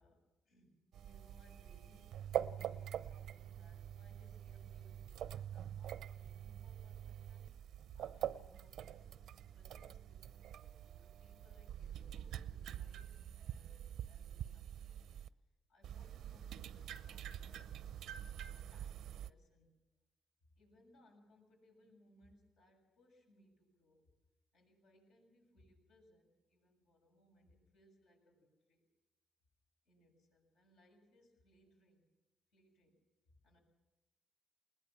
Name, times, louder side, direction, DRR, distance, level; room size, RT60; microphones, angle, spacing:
voice 1, 0.0-7.6 7.9-15.0 15.7-17.8 18.5-19.8 20.5-24.0 24.5-28.9 29.8-32.1 32.5-33.0 33.4-33.6, left 1 dB, 85° left, 1 dB, 6.7 m, -69 dB
sound 1, 0.9-15.3 15.8-19.3, right 10 dB, 80° right, 0.6 m, -45 dB
20.5 x 19.5 x 7.3 m, 1.0 s
cardioid pair, 90°, 0 cm